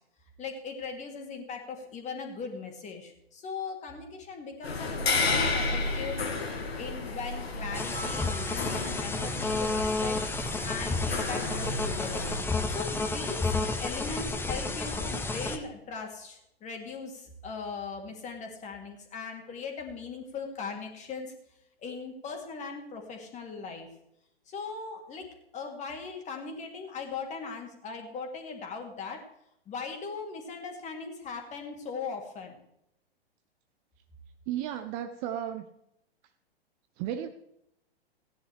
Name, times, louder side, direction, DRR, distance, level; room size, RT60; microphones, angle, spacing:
voice 1, 0.4-6.4 6.8-10.2 10.6-12.2 12.7-21.3 21.8-23.9 24.5-25.3 25.5-29.3 29.7-32.6, left 4 dB, 25° left, 3 dB, 2.4 m, -39 dB
sound 1, 4.6-12.4, left 3 dB, 75° left, 2.0 m, -32 dB
sound 2, 7.7-15.6, left 3 dB, 5° left, 0.8 m, -31 dB
sound 3, 7.9-10.3, right 2 dB, 70° right, 1.3 m, -47 dB
voice 2, 34.5-35.7 37.0-37.3, right 10 dB, 30° right, 9 dB, 0.7 m, -33 dB
16.5 x 10.0 x 3.3 m, 0.79 s
figure-of-eight pair, 110°, 31 cm